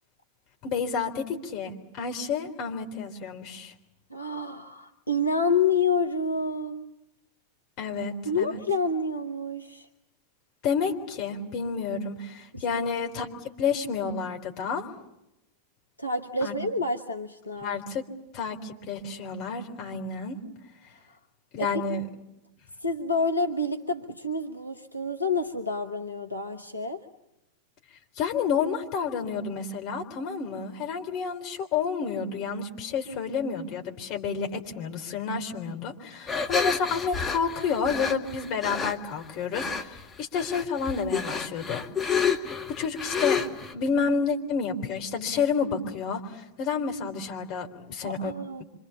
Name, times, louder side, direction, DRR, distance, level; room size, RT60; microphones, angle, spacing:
voice 1, 0.6-3.7 7.8-8.6 10.6-13.3 13.6-14.9 16.4-16.5 17.6-18.0 18.3-20.4 21.5-22.0 28.2-42.5 42.8-48.3, left 5 dB, 40° left, 2 dB, 3.7 m, -30 dB
voice 2, 4.1-6.9 8.2-9.9 12.5-12.8 16.0-17.7 21.6-22.0 22.8-27.0 48.0-48.6, left 3 dB, 85° left, 5 dB, 1.3 m, -28 dB
sound 1, 36.3-38.9 39.5-40.0 40.3-43.7, left 6 dB, 15° left, 2.0 m, -29 dB
26.5 x 26.0 x 7.2 m, 0.88 s
figure-of-eight pair, 90°, 0 cm